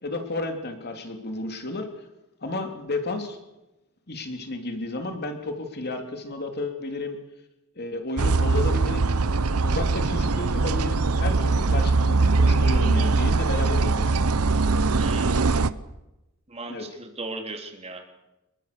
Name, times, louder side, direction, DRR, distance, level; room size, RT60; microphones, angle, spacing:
voice 1, 0.0-1.9 2.4-3.4 4.1-7.2 7.8-9.1 9.6-14.2 16.7-16.9, left 2 dB, 50° left, 5 dB, 3.1 m, -32 dB
sound 1, 8.2-15.7, right 3 dB, 80° right, 0.9 m, -22 dB
voice 2, 15.0-15.5 16.5-18.0, right 2 dB, 30° right, 3 dB, 3.4 m, -37 dB
26.0 x 22.5 x 6.9 m, 0.96 s
head